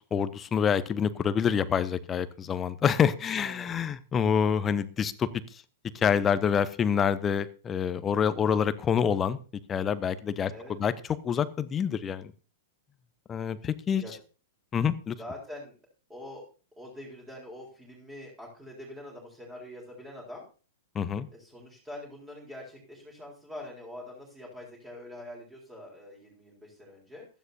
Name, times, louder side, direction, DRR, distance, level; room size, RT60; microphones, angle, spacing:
voice 1, 0.1-5.3 5.9-9.4 9.7-10.5 10.8-10.9 11.2-12.3 13.3-14.0 14.7-15.2 20.9-21.3, left 7 dB, 20° left, 14 dB, 0.8 m, -26 dB
voice 2, 3.3-3.7 10.5-10.9 14.0-14.2 15.2-15.7 16.1-16.4 16.8-20.4 21.3-27.3, left 1 dB, 10° right, -2 dB, 3.9 m, -44 dB
15.5 x 12.5 x 2.7 m, 0.35 s
figure-of-eight pair, 100°, 0 cm